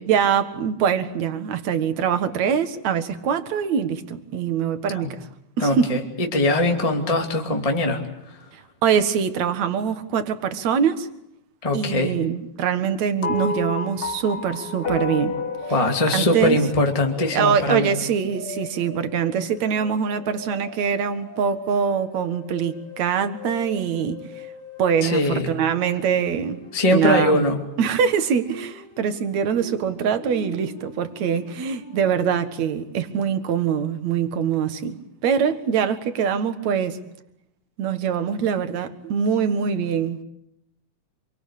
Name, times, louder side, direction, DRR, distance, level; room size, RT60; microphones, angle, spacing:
voice 1, 0.1-5.2 5.6-5.9 8.8-11.1 11.7-15.4 16.1-16.6 17.3-24.4 24.8-26.6 26.9-27.4 27.8-37.0 37.8-40.2, right 7 dB, 60° right, 2.8 m, -23 dB
voice 2, 5.6-8.0 11.6-12.1 15.7-17.9 25.0-25.5 26.7-27.6, left 1 dB, 10° left, 2.4 m, -21 dB
sound 1, 13.2-17.7, left 4 dB, 45° left, 0.7 m, -30 dB
sound 2, 15.3-32.7, left 3 dB, 60° left, 4.1 m, -41 dB
27.5 x 24.5 x 8.5 m
omnidirectional pair, 3.7 m